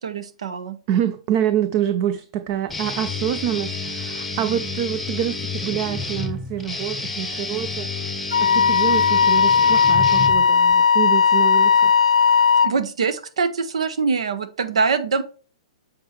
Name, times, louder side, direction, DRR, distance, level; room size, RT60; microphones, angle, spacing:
voice 1, 0.0-0.8 12.6-15.2, right 5 dB, 75° right, 1.0 m, -23 dB
voice 2, 0.9-7.9 8.4-11.9, right 10 dB, 40° right, 0.5 m, -26 dB
Guitar, 2.7-10.7, left 3 dB, 5° left, 0.9 m, -30 dB
Wind instrument woodwind instrument, 8.3-12.8, left 6 dB, 85° left, 0.5 m, -16 dB
7.6 x 4.5 x 3.1 m
hypercardioid pair, 130°, 3 cm